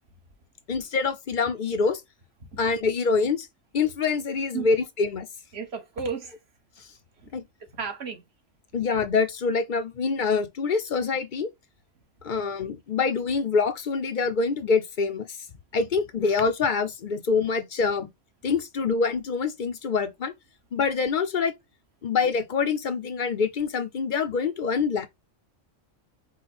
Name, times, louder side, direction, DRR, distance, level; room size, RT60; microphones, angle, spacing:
voice 1, 0.7-2.0 2.6-3.5 3.7-5.3 7.3-7.4 8.7-11.5 12.2-15.4 15.7-18.1 18.4-20.3 20.7-21.5 22.0-25.1, left 5 dB, 50° left, 0.7 m, -25 dB
voice 2, 5.5-6.4 7.2-7.4 7.8-8.2, right 5 dB, 55° right, 1.5 m, -34 dB
5.7 x 2.2 x 4.2 m
omnidirectional pair, 1.3 m